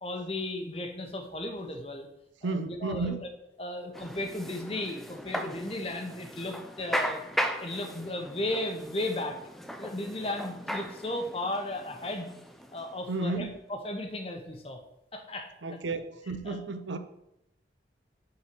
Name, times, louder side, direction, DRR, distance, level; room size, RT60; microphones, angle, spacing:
voice 1, 0.0-2.1 2.4-3.3 3.6-7.2 7.6-9.4 9.8-12.3 12.7-14.8 15.1-15.8 16.4-16.6, left 1 dB, 30° left, 1.0 m, -35 dB
voice 2, 2.4-3.2 13.1-13.5 15.6-17.0, right 3 dB, 85° right, 0.7 m, -32 dB
sound 1, 3.9-13.3, equal, ahead, 0.4 m, -37 dB
5.8 x 4.5 x 6.2 m
head